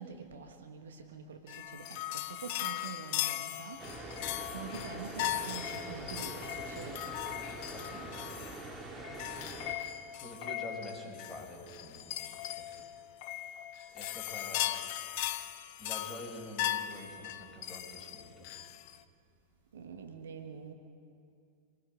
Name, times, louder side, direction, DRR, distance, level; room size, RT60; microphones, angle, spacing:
voice 1, 0.0-3.9 4.3-7.1 19.7-20.7, right 6 dB, 65° right, 5 dB, 1.5 m, -46 dB
sound 1, 1.5-19.0, left 13 dB, 45° left, 0.6 m, -38 dB
sound 2, 3.8-9.7, right 3 dB, 20° right, 2.6 m, -44 dB
voice 2, 7.7-8.2 10.2-12.7 13.9-14.8 15.8-18.5, left 1 dB, 15° left, 0 dB, 5.4 m, -47 dB
26.5 x 20.0 x 5.2 m, 2.4 s
figure-of-eight pair, 90°, 0 cm